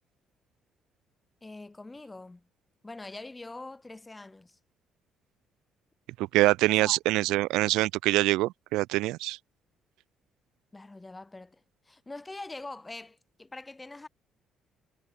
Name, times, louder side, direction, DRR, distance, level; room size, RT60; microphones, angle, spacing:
voice 1, 1.4-2.4 2.8-4.6 6.7-7.0 10.7-11.6 11.9-14.1, left 2 dB, 20° left, 4.3 m, -43 dB
voice 2, 6.2-9.4, right 18 dB, 85° right, 0.5 m, -25 dB
supercardioid pair, 80°, 0 cm